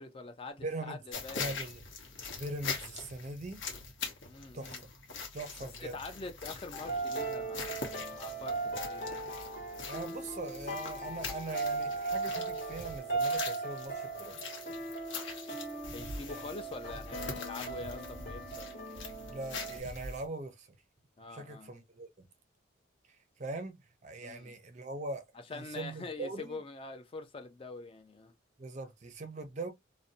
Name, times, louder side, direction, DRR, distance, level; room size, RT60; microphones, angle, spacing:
voice 1, 0.0-1.6 4.3-4.8 5.6-9.2 15.8-19.0 21.2-21.7 24.2-24.5 25.5-28.3, left 3 dB, 30° left, 0.4 m, -45 dB
voice 2, 0.6-1.0 1.4-1.8 2.4-3.6 4.5-4.8 5.3-6.0 9.9-14.4 16.3-16.5 19.3-20.7 21.3-22.3 23.1-25.3 25.5-26.6 28.6-29.7, right 2 dB, 35° right, 0.5 m, -41 dB
Walking through Mud, 1.1-20.3, left 4 dB, 75° left, 0.8 m, -43 dB
sound 1, 6.7-19.8, right 3 dB, 45° left, 0.9 m, -38 dB
2.6 x 2.1 x 2.6 m
head